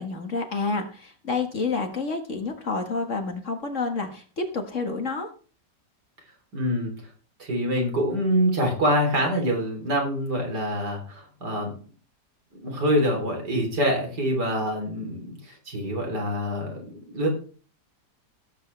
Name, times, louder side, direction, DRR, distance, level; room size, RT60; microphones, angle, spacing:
voice 1, 0.0-5.3, left 4 dB, 45° left, 5 dB, 1.9 m, -29 dB
voice 2, 6.5-6.9 7.4-11.8 12.5-17.3, equal, 70° right, 1 dB, 4.1 m, -25 dB
17.0 x 8.2 x 3.3 m, 0.39 s
omnidirectional pair, 1.8 m